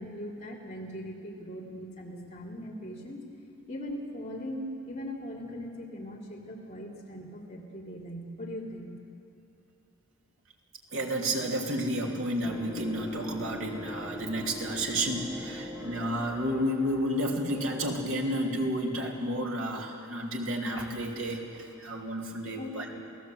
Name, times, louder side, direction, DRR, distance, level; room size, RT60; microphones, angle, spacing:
voice 1, 0.0-3.2 3.7-8.9 22.6-23.0, equal, 30° left, -4 dB, 3.6 m, -40 dB
voice 2, 10.9-22.9, equal, 70° right, 0 dB, 3.1 m, -31 dB
sound 1, 12.4-18.1, left 1 dB, 10° right, 2.3 m, -41 dB
28.5 x 17.5 x 8.0 m, 2.8 s
head